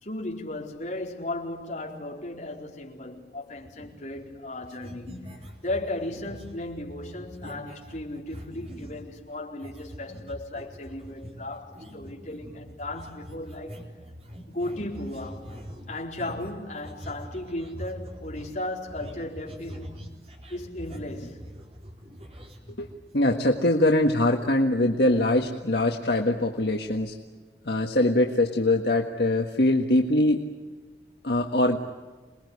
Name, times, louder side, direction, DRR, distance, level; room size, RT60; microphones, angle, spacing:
voice 1, 0.0-5.3 5.6-13.8 14.5-15.4 15.9-19.9 20.5-21.4, left 1 dB, 45° left, 4.3 m, -35 dB
sound 1, 3.6-4.4 4.6-9.1 9.6-23.3, equal, 35° right, 4.2 m, -43 dB
voice 2, 23.1-27.2 27.7-30.5 31.2-31.8, left 1 dB, 70° left, 1.7 m, -23 dB
28.0 x 21.0 x 9.7 m
head